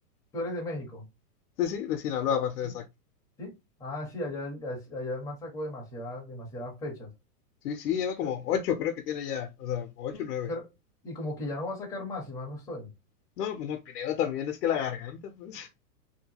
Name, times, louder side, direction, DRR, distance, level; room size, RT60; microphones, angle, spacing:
voice 1, 0.3-1.0 2.6-2.7 3.4-3.5 3.8-7.1 8.2-8.3 10.1-10.7 11.0-12.9, left 1 dB, 10° left, 0.5 m, -36 dB
voice 2, 1.6-2.8 7.6-10.5 13.4-15.7, left 9 dB, 75° left, 0.6 m, -30 dB
2.7 x 2.2 x 2.7 m
hypercardioid pair, 145°, 46 cm